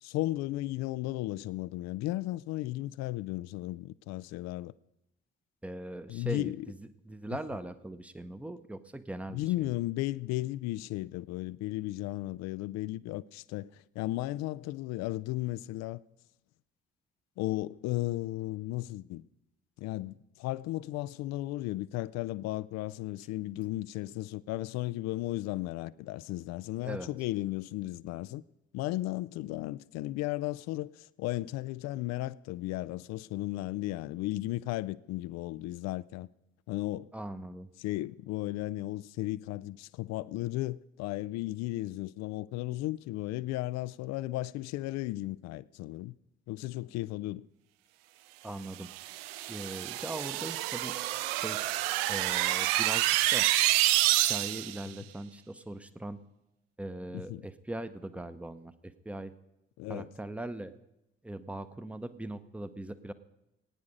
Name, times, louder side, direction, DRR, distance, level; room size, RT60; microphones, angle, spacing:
voice 1, 0.0-4.7 6.1-6.7 9.3-16.0 17.4-19.2 19.8-28.4 28.7-36.3 36.7-37.1 37.8-46.1 46.5-47.5 57.3-57.4 59.8-60.1, left 17 dB, 55° left, 0.5 m, -35 dB
voice 2, 5.6-9.7 26.8-27.1 37.1-37.7 48.4-48.9 49.5-51.0 51.4-51.6 52.1-53.5 54.3-56.2 56.8-59.3 59.9-60.7 61.2-63.1, right 1 dB, 5° right, 0.9 m, -40 dB
sound 1, 48.8-54.8, right 16 dB, 70° right, 0.5 m, -28 dB
19.5 x 9.6 x 5.2 m
figure-of-eight pair, 45°, 31 cm